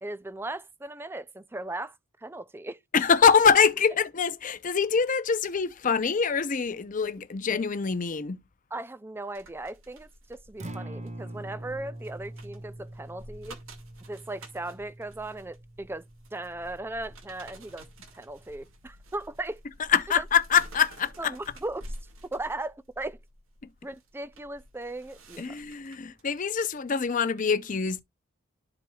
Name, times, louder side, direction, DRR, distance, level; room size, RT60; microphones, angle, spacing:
voice 1, 0.0-2.8 8.7-13.6 14.1-16.0 16.3-17.9 18.1-19.6 20.2-20.3 21.2-21.8 22.3-23.2 23.8-25.6, right 2 dB, 10° right, 0.4 m, -37 dB
voice 2, 2.9-8.4 19.7-21.5 25.4-28.0, left 6 dB, 40° left, 0.6 m, -24 dB
sound 1, 9.3-26.2 26.7-26.9, right 1 dB, 75° right, 1.9 m, -50 dB
Acoustic guitar, 10.5-18.7, right 1 dB, 35° right, 0.9 m, -44 dB
12.5 x 4.6 x 2.3 m
head